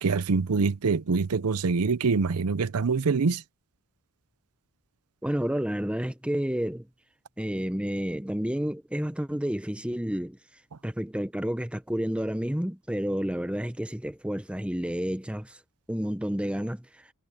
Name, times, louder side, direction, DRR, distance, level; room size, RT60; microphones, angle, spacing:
voice 1, 0.0-3.4, right 4 dB, 90° right, 0.6 m, -25 dB
voice 2, 5.2-6.9 7.4-10.4 10.8-15.6 15.9-16.9, equal, 5° right, 0.8 m, -30 dB
head